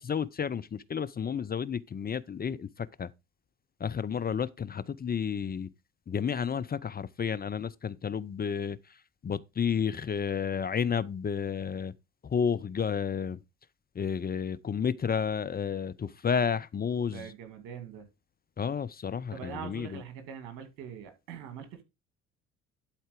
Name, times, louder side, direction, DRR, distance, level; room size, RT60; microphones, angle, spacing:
voice 1, 0.0-2.7 3.0-3.1 3.8-5.7 6.1-8.8 9.2-11.9 12.3-13.4 14.0-17.2 18.6-19.3 19.6-19.9, left 7 dB, 25° left, 0.6 m, -31 dB
voice 2, 17.1-18.1 19.3-21.8, right 8 dB, 70° right, 2.4 m, -43 dB
11.5 x 4.4 x 5.0 m
hypercardioid pair, 60°, 34 cm